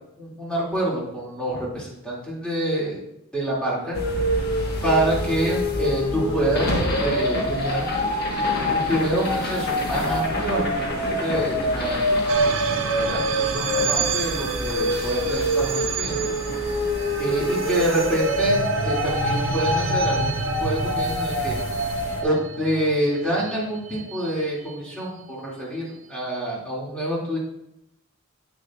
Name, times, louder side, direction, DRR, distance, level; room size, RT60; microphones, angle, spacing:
voice 1, 0.2-3.0 3.3-4.4 4.8-7.9 8.6-12.2 13.0-16.2 17.2-20.3 20.6-21.6 22.2-27.4, right 1 dB, 5° left, -6 dB, 2.4 m, -27 dB
sound 1, 3.9-22.2, left 1 dB, 50° left, 1.3 m, -25 dB
sound 2, 12.3-24.7, right 5 dB, 65° right, 0.6 m, -29 dB
9.7 x 8.1 x 2.4 m, 0.84 s
head